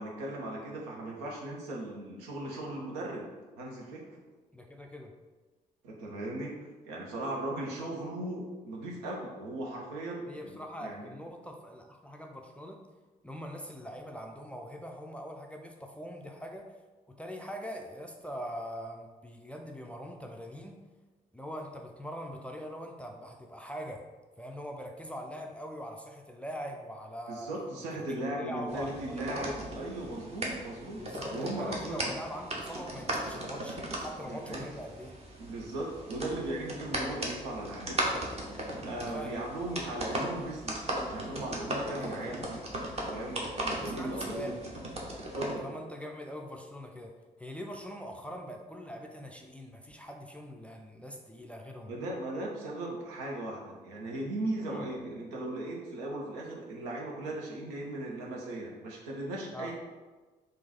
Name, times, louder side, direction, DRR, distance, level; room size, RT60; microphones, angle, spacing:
voice 1, 0.0-3.3 3.6-4.0 5.8-6.5 6.8-11.1 27.3-32.1 34.3-34.7 35.4-38.2 38.8-42.6 43.1-44.5 45.2-45.7 51.9-59.7, right 1 dB, 70° right, -1 dB, 0.7 m, -37 dB
voice 2, 4.5-5.1 10.3-12.8 13.2-16.7 17.1-20.8 21.3-24.1 24.4-27.5 28.0-29.4 31.0-35.2 39.1-39.4 42.0-42.4 43.8-44.7 45.6-51.9 54.7-54.9 59.5-59.7, equal, 5° left, 2 dB, 0.4 m, -42 dB
sound 1, 28.7-45.5, right 1 dB, 30° right, 0.9 m, -37 dB
3.7 x 2.5 x 4.1 m, 1.3 s
figure-of-eight pair, 40°, 21 cm